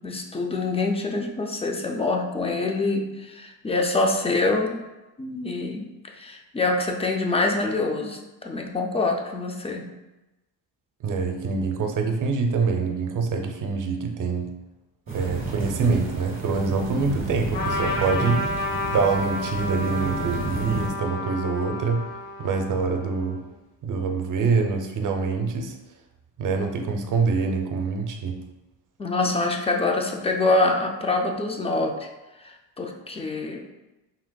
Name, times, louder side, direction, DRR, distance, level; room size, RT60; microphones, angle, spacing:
voice 1, 0.0-4.8 5.2-5.9 6.2-9.9 29.0-32.1 32.4-33.7, left 2 dB, 15° left, 2 dB, 0.3 m, -25 dB
voice 2, 11.0-14.5 15.1-18.5 18.8-22.1 22.4-23.4 23.8-25.7 26.4-28.4, right 4 dB, 45° right, 4 dB, 0.6 m, -25 dB
sound 1, 15.1-20.9, right 3 dB, 20° right, 1.2 m, -32 dB
Trumpet, 17.5-23.4, left 1 dB, 75° left, 1.2 m, -31 dB
4.9 x 3.3 x 2.2 m, 1.0 s
cardioid pair, 125°, 44 cm